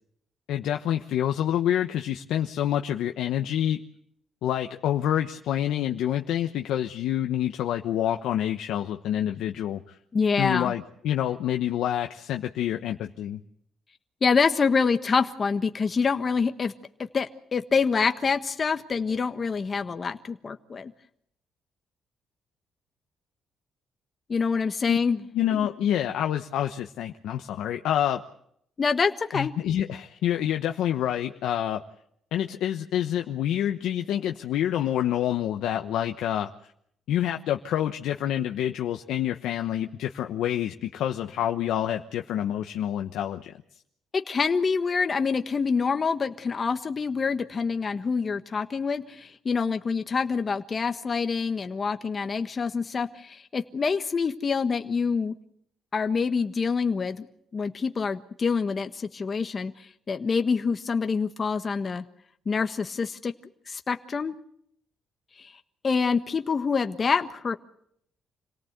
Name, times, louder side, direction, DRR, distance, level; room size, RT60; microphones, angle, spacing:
voice 1, 0.5-3.8 4.4-10.0 10.4-13.4 24.9-25.0 25.3-28.2 29.3-31.8 32.3-36.5 37.1-43.5, left 11 dB, 85° left, 5 dB, 1.0 m, -27 dB
voice 2, 10.1-10.7 14.2-16.7 17.0-20.9 24.3-25.2 25.5-25.6 28.8-29.5 44.1-55.3 55.9-57.3 57.5-62.0 62.4-63.3 63.7-64.3 65.8-67.6, left 5 dB, 40° left, 7 dB, 1.4 m, -26 dB
27.0 x 18.0 x 8.1 m, 0.73 s
cardioid pair, 90°, 0 cm